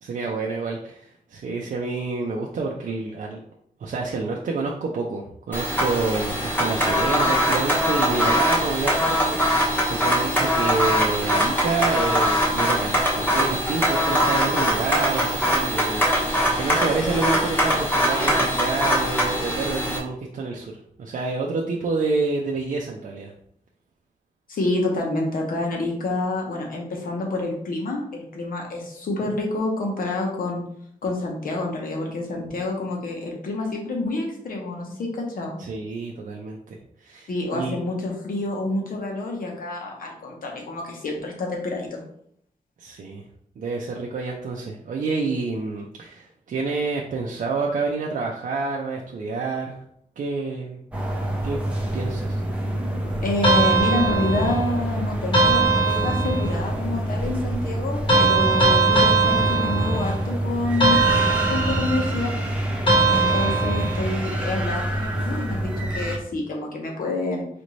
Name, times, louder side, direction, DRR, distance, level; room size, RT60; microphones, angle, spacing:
voice 1, 0.0-3.4 3.8-20.7 21.0-23.3 35.6-37.8 42.8-43.2 43.6-49.8 50.2-50.8 51.4-51.6 51.9-52.4, right 4 dB, 70° right, -1 dB, 0.5 m, -28 dB
sound 1, 5.5-20.0, equal, 15° left, 0.9 m, -22 dB
voice 2, 24.5-30.6 31.0-35.6 37.3-42.0 53.2-62.3 63.1-67.5, left 2 dB, 85° left, 0 dB, 1.0 m, -28 dB
sound 2, 50.9-66.2, right 1 dB, 10° right, 0.6 m, -27 dB
sound 3, 53.4-54.7 55.3-56.6 58.1-60.3 60.8-62.1 62.9-64.2, right 3 dB, 35° left, 1.0 m, -20 dB
4.2 x 2.6 x 3.1 m, 0.69 s
wide cardioid pair, 135°, 14 cm